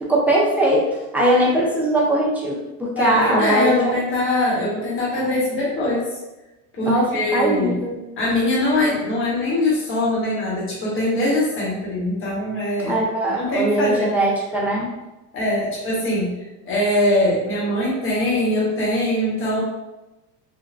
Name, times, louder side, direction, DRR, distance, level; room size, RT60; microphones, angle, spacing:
voice 1, 0.0-0.8 1.1-4.0 5.1-5.3 6.8-7.9 12.8-14.9, right 1 dB, 5° right, -5 dB, 0.4 m, -20 dB
voice 2, 3.0-6.1 6.8-7.8 8.2-13.0 13.4-14.2 15.3-16.3 16.6-19.6, left 1 dB, 30° left, -6 dB, 1.1 m, -22 dB
3.3 x 2.2 x 2.4 m, 1.0 s
cardioid pair, 140°, 42 cm